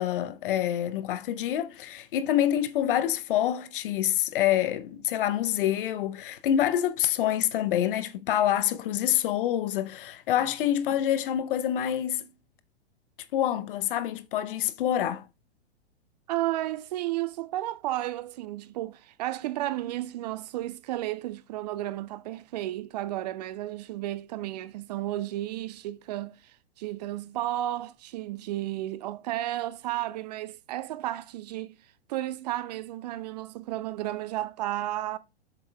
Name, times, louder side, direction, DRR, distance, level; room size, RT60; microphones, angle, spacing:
voice 1, 0.0-12.3 13.3-15.3, left 11 dB, 55° left, 0.7 m, -26 dB
voice 2, 16.3-31.8 32.1-35.2, right 15 dB, 40° right, 0.4 m, -33 dB
7.5 x 6.2 x 2.2 m
hypercardioid pair, 110°, 33 cm